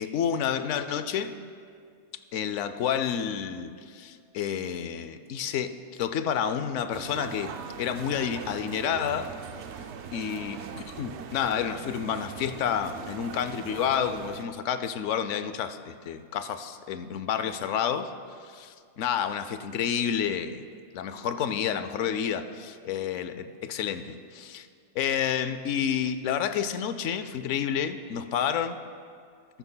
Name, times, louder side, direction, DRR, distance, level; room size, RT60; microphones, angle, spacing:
voice 1, 0.0-1.3 2.3-7.5 7.8-9.3 10.1-18.1 18.5-24.7 25.0-28.8, left 8 dB, 75° left, 11 dB, 0.9 m, -30 dB
sound 1, 6.9-14.5, right 7 dB, 70° right, 0.9 m, -41 dB
14.0 x 13.5 x 2.2 m, 2.2 s
omnidirectional pair, 1.3 m